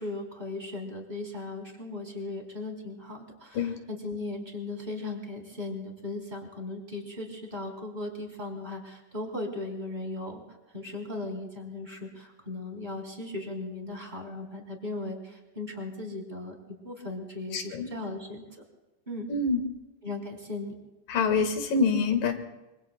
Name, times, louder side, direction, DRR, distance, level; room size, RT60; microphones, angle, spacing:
voice 1, 0.0-16.5 16.8-18.4 19.1-19.3 20.0-20.7, left 2 dB, 15° right, 0 dB, 3.4 m, -37 dB
voice 2, 17.5-17.9 19.3-19.6 21.1-22.3, left 4 dB, 80° left, 6 dB, 3.3 m, -25 dB
26.5 x 24.5 x 2.2 m, 1.1 s
omnidirectional pair, 3.8 m